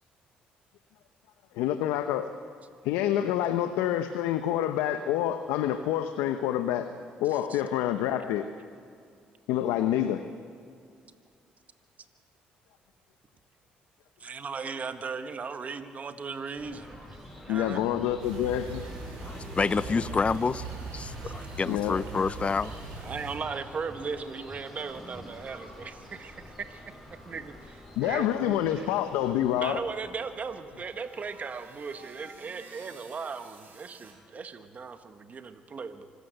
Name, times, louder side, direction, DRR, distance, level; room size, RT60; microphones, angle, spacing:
voice 1, 1.6-2.3 2.8-6.9 7.2-8.5 9.5-10.2 17.5-18.8 21.7-22.0 28.0-29.8, left 11 dB, 85° left, 9 dB, 0.8 m, -27 dB
voice 2, 7.3-7.6 14.2-17.9 19.8-20.1 21.2-21.3 23.0-27.0 27.3-28.9 29.6-36.1, right 5 dB, 45° right, 9 dB, 1.6 m, -38 dB
sound 1, 16.6-32.2, left 1 dB, ahead, 6.5 m, -47 dB
sound 2, 18.2-23.4, right 4 dB, 90° right, 4.5 m, -41 dB
voice 3, 19.2-20.6 20.9-22.7, left 4 dB, 35° left, 18 dB, 0.6 m, -28 dB
sound 3, 29.4-34.1, right 3 dB, 60° right, 4.5 m, -53 dB
25.0 x 13.5 x 7.9 m, 2.2 s
supercardioid pair, 65°, 4 cm